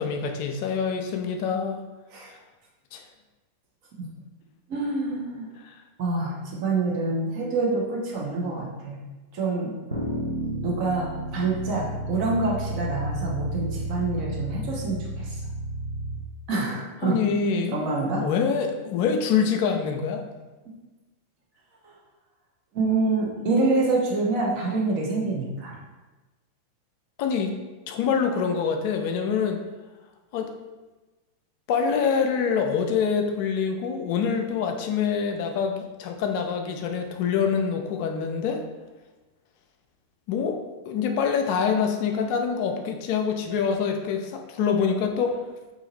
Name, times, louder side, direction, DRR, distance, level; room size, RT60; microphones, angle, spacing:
voice 1, 0.0-1.8 2.9-3.0 5.6-5.8 17.0-17.9 18.2-20.2 27.2-27.6 27.9-29.6 30.3-30.5 31.7-38.6 40.3-45.4, left 6 dB, 45° left, 4 dB, 0.3 m, -25 dB
voice 2, 4.7-5.5 6.0-9.0 9.3-9.8 10.6-15.3 16.5-17.2 17.7-18.2 21.8-21.9 22.7-25.8, right 3 dB, 45° right, -3 dB, 0.8 m, -26 dB
sound 1, 9.9-16.2, right 1 dB, 85° right, 0.5 m, -32 dB
2.7 x 2.5 x 3.0 m, 1.2 s
figure-of-eight pair, 90°, 0 cm